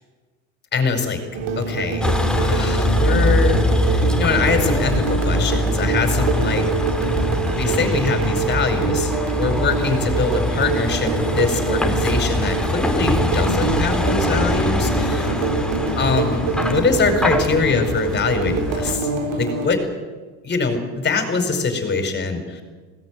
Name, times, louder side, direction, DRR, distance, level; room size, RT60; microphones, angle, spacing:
voice 1, 0.7-1.2 1.6-2.1 2.3-6.7 7.5-15.3 16.0-19.1 19.4-19.8 20.4-22.6, left 4 dB, 30° left, 6 dB, 5.2 m, -23 dB
sound 1, 1.3-19.7, right 4 dB, 65° right, 4.1 m, -25 dB
Vehicle, 2.0-19.0, left 1 dB, ahead, 2.9 m, -23 dB
21.0 x 18.0 x 9.7 m, 1.4 s
supercardioid pair, 115°, 35 cm